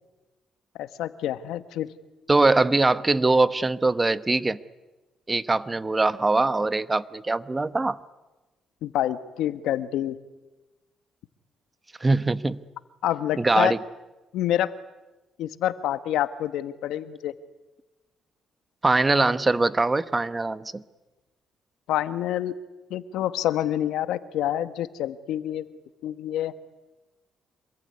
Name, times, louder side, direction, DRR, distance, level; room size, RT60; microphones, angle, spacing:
voice 1, 0.8-1.9 8.8-10.2 13.0-13.7 14.3-14.7 15.4-17.3 21.9-22.6 22.9-25.7 26.0-26.5, left 12 dB, 85° left, 12 dB, 1.2 m, -27 dB
voice 2, 2.3-4.6 5.3-8.0 12.0-12.6 13.4-13.8 18.8-20.8, right 3 dB, 20° right, 14 dB, 1.0 m, -22 dB
26.5 x 22.0 x 9.6 m, 1.1 s
cardioid pair, 90°, 0 cm